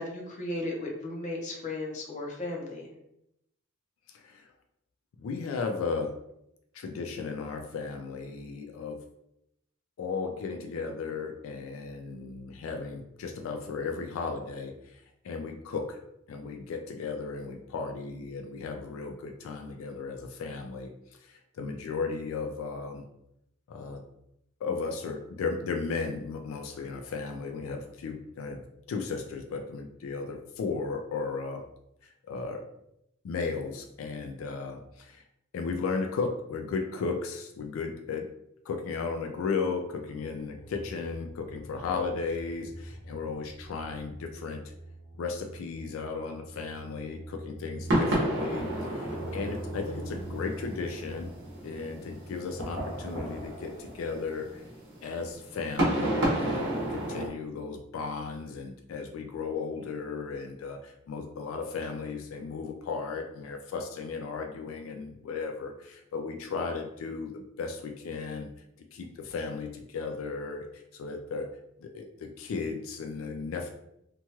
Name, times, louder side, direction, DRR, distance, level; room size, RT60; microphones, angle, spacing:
voice 1, 0.0-2.9, left 2 dB, 40° left, -1 dB, 0.7 m, -35 dB
voice 2, 4.1-4.5 5.2-6.2 6.7-9.0 10.0-16.0 16.3-20.9 21.2-23.0 23.7-24.0 24.6-28.6 28.9-31.6 32.0-32.6 33.2-35.2 35.5-38.3 38.7-44.7 45.2-51.3 51.6-54.6 55.0-68.5 68.9-71.5 71.8-73.7, left 4 dB, 90° left, 4 dB, 0.3 m, -35 dB
sound 1, 40.0-53.4, right 1 dB, 60° left, 1.1 m, -44 dB
sound 2, 47.9-57.3, right 1 dB, 60° right, 0.9 m, -32 dB
2.9 x 2.3 x 2.8 m, 0.81 s
head